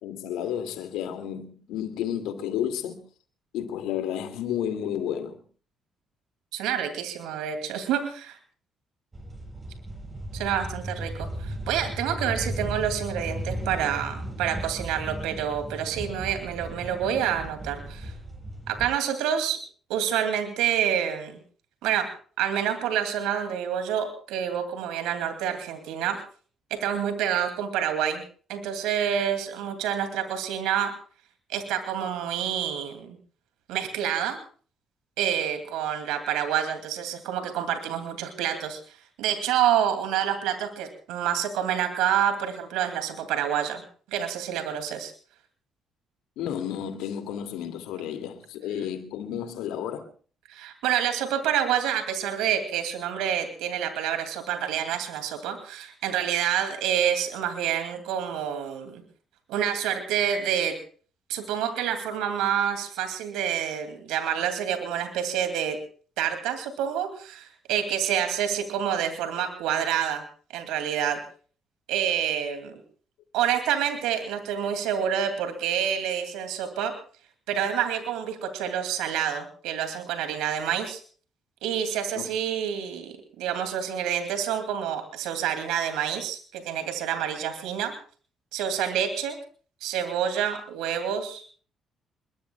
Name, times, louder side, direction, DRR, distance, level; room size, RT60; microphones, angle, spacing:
voice 1, 0.0-3.0 3.5-5.4 46.4-50.1 82.2-82.3, left 9 dB, 75° left, 2.5 m, -31 dB
voice 2, 6.5-8.4 10.3-18.1 18.7-19.6 19.9-21.4 21.8-22.1 22.4-26.2 26.7-28.2 28.5-30.9 31.5-33.2 33.7-34.4 35.2-43.8 44.1-45.1 50.5-59.0 59.5-60.8 61.3-65.8 66.2-70.2 70.5-71.2 71.9-72.8 73.3-76.9 77.5-81.0 81.6-87.9 88.5-89.4 89.8-91.5, right 9 dB, 80° right, 2.6 m, -28 dB
sound 1, 9.1-18.9, right 1 dB, 30° right, 7.9 m, -36 dB
27.5 x 22.0 x 2.4 m
hypercardioid pair, 50°, 0 cm